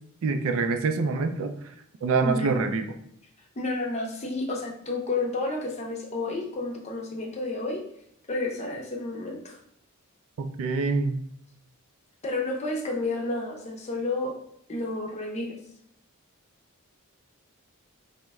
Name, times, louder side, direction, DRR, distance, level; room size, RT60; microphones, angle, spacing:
voice 1, 0.2-1.7 2.0-2.9 10.4-11.2, right 4 dB, 65° right, 7 dB, 0.3 m, -26 dB
voice 2, 2.2-2.6 3.6-7.8 8.3-9.6 12.2-14.3 14.7-15.6, left 2 dB, 30° left, 0 dB, 0.6 m, -30 dB
3.0 x 2.1 x 3.4 m, 0.69 s
head